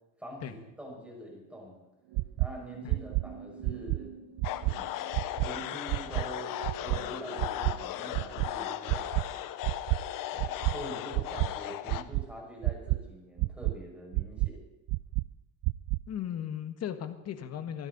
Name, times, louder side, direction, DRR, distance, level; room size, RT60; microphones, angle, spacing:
voice 1, 0.2-1.8 2.4-4.1 4.4-4.9 5.4-9.3 10.3-14.6, equal, 5° right, -2 dB, 5.8 m, -44 dB
sound 1, 2.0-12.4 12.6-12.9, right 5 dB, 85° right, 7.9 m, -50 dB
sound 2, 2.2-2.5 2.9-3.2 3.6-4.0 4.4-4.7 5.1-5.5 5.9-6.2 6.6-7.0 7.4-7.7 8.1-8.5 8.9-9.2 9.6-10.0 10.4-10.7 11.1-11.5 11.9-12.2 12.6-13.0 13.4-13.7 14.1-14.5 14.9-15.2 15.6-16.0, right 24 dB, 55° right, 0.4 m, -28 dB
sound 3, 4.4-12.0, left 13 dB, 55° left, 1.0 m, -37 dB
voice 2, 16.1-17.9, left 9 dB, 40° left, 9 dB, 1.5 m, -37 dB
24.5 x 12.5 x 4.1 m, 0.99 s
cardioid pair, 135°, 40 cm